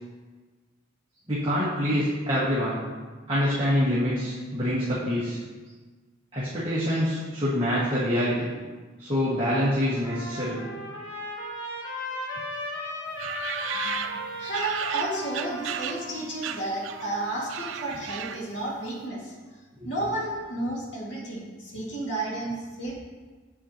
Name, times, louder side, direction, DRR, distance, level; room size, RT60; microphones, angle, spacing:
voice 1, 1.3-2.8 3.3-5.4 6.3-8.5 9.0-10.6 19.7-20.1, equal, 25° right, -10 dB, 1.6 m, -26 dB
Trumpet, 9.3-17.7, left 1 dB, 85° left, 1.9 m, -37 dB
sound 1, 13.2-16.1 16.4-17.1 17.4-18.6, right 9 dB, 80° right, 0.4 m, -35 dB
voice 2, 13.8-19.3 19.8-22.9, right 2 dB, 65° left, -3 dB, 2.0 m, -32 dB
8.8 x 7.5 x 2.9 m, 1.4 s
head